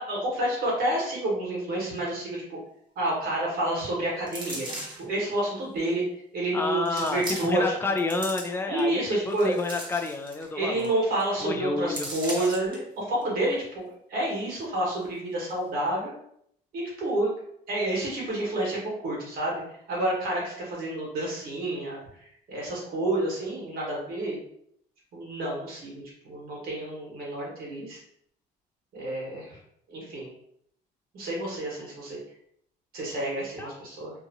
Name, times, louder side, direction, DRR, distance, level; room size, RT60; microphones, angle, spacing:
voice 1, 0.0-2.6 2.9-4.7 5.0-6.0 6.3-7.6 8.7-9.6 10.5-16.1 16.7-17.3 17.7-19.6 19.9-24.4 25.1-28.0 28.9-29.6 29.9-30.3 31.1-32.2 32.9-34.1, right 1 dB, 65° right, -4 dB, 1.4 m, -29 dB
sound 1, 4.3-5.1 5.9-6.0 6.9-7.7 8.0-8.8 9.3-10.5 10.8-10.9 11.2-11.4 11.9-12.8 13.2-13.3, right 1 dB, 30° right, 1.0 m, -37 dB
voice 2, 6.5-10.9 11.4-12.1 31.8-32.0 33.6-33.8, left 3 dB, 15° left, 4 dB, 0.4 m, -30 dB
2.8 x 2.5 x 2.7 m, 0.70 s
cardioid pair, 110°, 17 cm